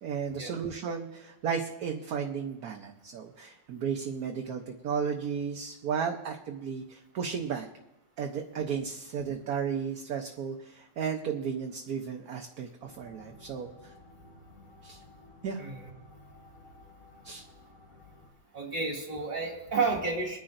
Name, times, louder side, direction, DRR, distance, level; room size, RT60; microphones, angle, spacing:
voice 1, 0.0-7.7 8.2-13.9 14.8-15.0 15.4-15.6 17.2-17.4, right 7 dB, 60° right, 3 dB, 1.3 m, -34 dB
sound 1, 12.8-18.3, left 2 dB, 50° left, 1.6 m, -54 dB
voice 2, 15.6-15.9 18.5-20.4, right 4 dB, 25° right, -1 dB, 2.5 m, -31 dB
23.5 x 9.9 x 2.6 m, 0.91 s
omnidirectional pair, 1.9 m